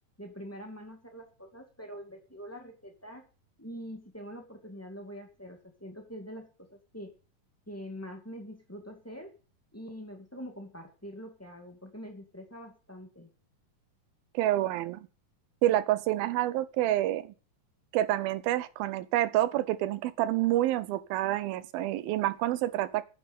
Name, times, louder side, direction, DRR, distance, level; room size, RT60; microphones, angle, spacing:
voice 1, 0.2-3.3 3.6-7.1 7.7-9.3 9.7-13.3, equal, 5° left, 3 dB, 1.6 m, -44 dB
voice 2, 14.3-15.0 15.6-17.3 17.9-23.0, right 14 dB, 85° right, 15 dB, 2.7 m, -28 dB
10.0 x 9.1 x 5.5 m, 0.35 s
omnidirectional pair, 4.2 m